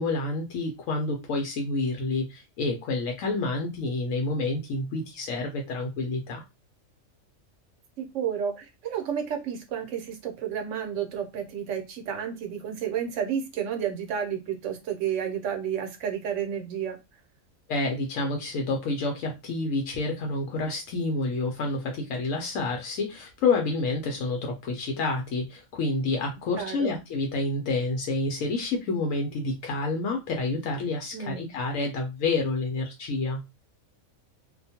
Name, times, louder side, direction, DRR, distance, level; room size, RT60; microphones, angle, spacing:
voice 1, 0.0-6.4 17.7-33.4, left 3 dB, 80° left, 1.0 m, -28 dB
voice 2, 8.0-17.0 26.6-27.0 31.1-31.5, right 8 dB, 70° right, 1.0 m, -31 dB
2.5 x 2.2 x 2.7 m
omnidirectional pair, 1.4 m